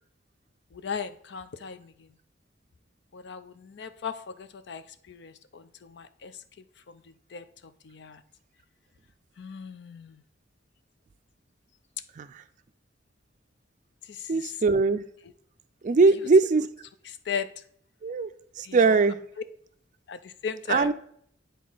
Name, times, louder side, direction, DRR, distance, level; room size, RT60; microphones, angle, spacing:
voice 1, 0.7-2.1 3.1-6.4 6.9-7.0 7.3-8.2 9.4-10.2 14.1-14.6 15.9-16.3 17.0-17.5 18.6-19.0 19.4-19.5 20.1-20.9, left 6 dB, 65° left, 12 dB, 0.5 m, -37 dB
voice 2, 14.3-15.0 15.8-16.7 18.0-18.3 18.7-19.2 20.7-20.9, right 4 dB, 40° right, 11 dB, 0.4 m, -20 dB
9.4 x 4.0 x 3.9 m, 0.66 s
head